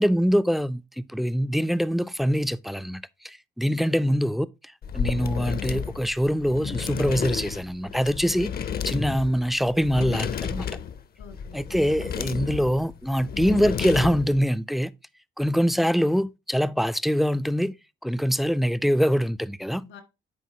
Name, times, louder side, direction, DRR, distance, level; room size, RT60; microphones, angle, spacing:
voice 1, 0.0-4.5 4.9-8.5 8.8-10.7 11.5-14.9 15.4-17.7 18.0-19.8, equal, ahead, 0.3 m, -24 dB
voice 2, 3.6-4.2 11.2-11.6 19.8-20.0, left 6 dB, 80° left, 1.8 m, -48 dB
sound 1, 4.8-14.4, left 7 dB, 50° left, 0.6 m, -32 dB
9.3 x 4.1 x 2.8 m
cardioid pair, 90°, 20 cm